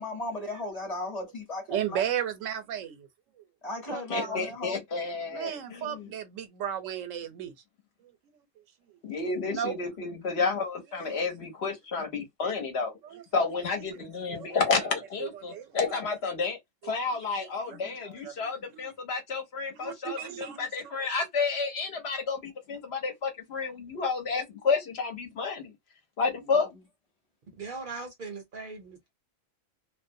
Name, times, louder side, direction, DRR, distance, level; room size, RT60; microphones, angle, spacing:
voice 1, 0.0-2.0 3.6-4.8, left 2 dB, 35° left, 0.9 m, -35 dB
voice 2, 1.7-3.0 3.9-4.5 5.3-7.5 9.5-9.8 11.0-11.1 13.0-13.2 13.7-13.8 14.3-14.5 15.2-15.8 16.8-17.0 17.7-18.4 18.7-18.9 19.8-20.7, right 10 dB, 80° right, 1.0 m, -35 dB
voice 3, 3.9-6.1 9.0-12.9 13.3-16.6 16.8-25.7 26.2-26.7, left 4 dB, 60° left, 1.0 m, -31 dB
voice 4, 27.6-29.1, right 4 dB, 50° right, 0.7 m, -39 dB
2.4 x 2.1 x 2.6 m
omnidirectional pair, 1.3 m